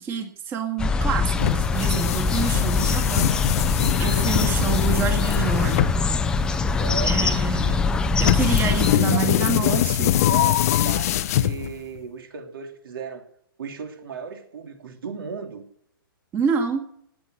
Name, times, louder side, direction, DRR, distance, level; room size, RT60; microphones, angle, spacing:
voice 1, 0.0-3.3 4.0-5.7 7.0-7.9 8.2-10.1 16.3-16.8, right 6 dB, 20° right, 5 dB, 2.1 m, -27 dB
sound 1, 0.8-8.9, left 4 dB, 5° left, 0.6 m, -23 dB
sound 2, 1.4-12.0, left 12 dB, 40° left, 0.7 m, -23 dB
voice 2, 6.8-7.4 8.9-13.3 13.6-15.6, right 5 dB, 70° right, 4 dB, 3.1 m, -35 dB
19.0 x 7.6 x 7.8 m, 0.71 s
hypercardioid pair, 160°, 12 cm